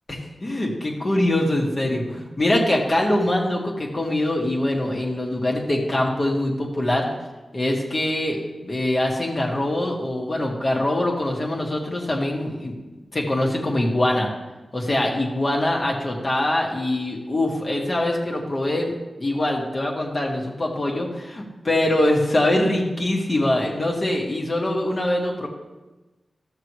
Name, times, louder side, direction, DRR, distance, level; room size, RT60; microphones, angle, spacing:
voice 1, 0.1-7.1 7.5-12.7 13.1-14.3 14.7-18.9 19.2-25.5, left 1 dB, 45° left, -1 dB, 2.1 m, -23 dB
14.0 x 6.6 x 3.3 m, 1.1 s
cardioid pair, 45°, 0 cm